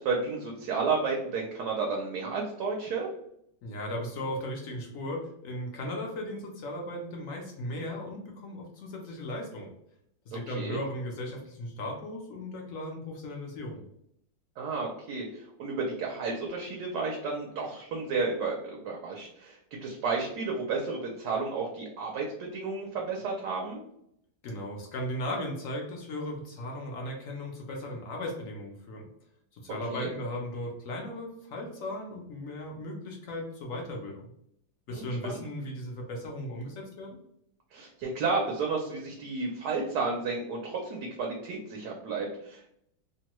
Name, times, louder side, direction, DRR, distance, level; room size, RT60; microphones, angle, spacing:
voice 1, 0.0-3.1 10.3-10.8 14.6-23.8 29.9-30.1 34.9-35.4 37.7-42.7, right 4 dB, 75° right, 0 dB, 1.1 m, -32 dB
voice 2, 3.6-9.7 10.3-13.8 24.4-29.1 29.5-34.2 34.9-37.2, left 1 dB, 65° left, 0 dB, 0.8 m, -37 dB
3.1 x 2.2 x 2.9 m, 0.74 s
omnidirectional pair, 1.9 m